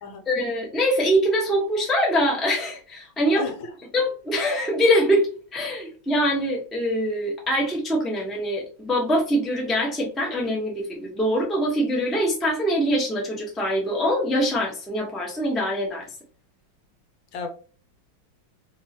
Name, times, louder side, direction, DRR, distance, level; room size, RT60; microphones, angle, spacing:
voice 1, 0.3-3.4 3.9-5.3 5.5-16.1, equal, ahead, 0.8 m, -23 dB
voice 2, 3.3-3.7 17.3-17.5, left 5 dB, 80° left, 1.5 m, -32 dB
3.6 x 3.1 x 2.9 m
omnidirectional pair, 2.1 m